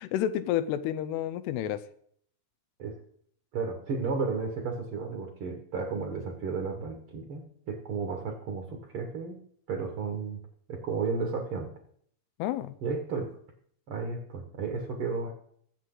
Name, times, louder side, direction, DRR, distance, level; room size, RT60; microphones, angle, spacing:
voice 1, 0.0-1.8 12.4-12.8, left 11 dB, 85° left, 14 dB, 2.8 m, -30 dB
voice 2, 3.5-9.4 9.7-10.4 10.7-11.7 12.8-13.3 13.9-15.3, right 4 dB, 50° right, 3 dB, 1.7 m, -33 dB
21.5 x 7.7 x 3.9 m, 0.63 s
omnidirectional pair, 4.6 m